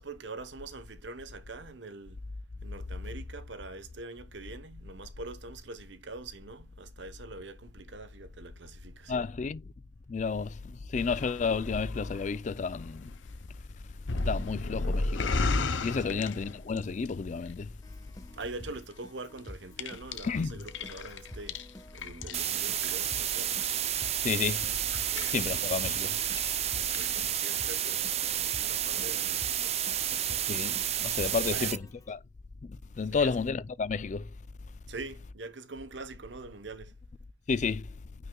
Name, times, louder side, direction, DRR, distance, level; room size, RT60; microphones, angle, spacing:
voice 1, 0.0-2.2 2.6-9.3 16.1-16.3 18.3-21.6 21.9-23.6 25.1-25.7 27.0-30.4 31.3-31.8 33.2-33.4 34.9-36.9, right 3 dB, 75° right, 0.9 m, -44 dB
voice 2, 9.1-9.6 10.1-13.1 14.3-15.4 15.8-17.7 20.2-20.6 24.2-26.2 30.5-31.8 32.1-32.2 32.6-34.3 37.5-37.9, left 5 dB, 40° left, 0.4 m, -32 dB
sound 1, 11.0-17.1 17.4-18.1 18.6-18.9 19.4-26.0 26.2-26.7 26.9-27.6 27.9-28.0, left 3 dB, 90° left, 0.7 m, -35 dB
Keyboard (musical), 17.8-32.1, equal, 20° left, 1.2 m, -49 dB
sound 2, 22.3-31.8, right 10 dB, 35° right, 0.5 m, -31 dB
9.4 x 5.5 x 2.3 m
head